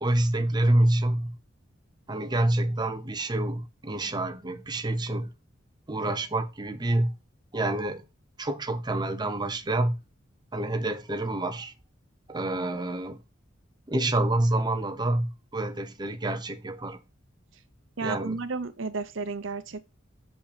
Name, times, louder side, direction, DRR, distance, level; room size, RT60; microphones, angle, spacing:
voice 1, 0.0-1.3 2.1-5.3 5.9-7.1 7.5-8.0 8.4-10.0 10.5-11.7 12.3-13.2 13.9-17.0 18.0-18.4, right 1 dB, 20° right, 0.8 m, -27 dB
voice 2, 18.0-19.8, right 4 dB, 75° right, 0.8 m, -32 dB
6.8 x 5.4 x 5.0 m
head